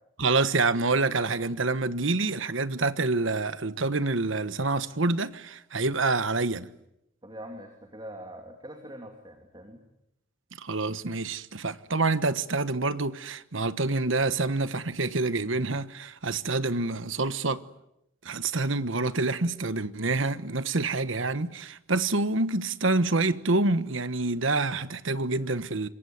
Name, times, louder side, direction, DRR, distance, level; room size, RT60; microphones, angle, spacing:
voice 1, 0.2-6.7 10.6-17.6 18.2-25.9, right 3 dB, 70° right, 1.3 m, -27 dB
voice 2, 7.2-9.8, right 1 dB, 25° right, 2.8 m, -43 dB
26.5 x 23.0 x 9.4 m
head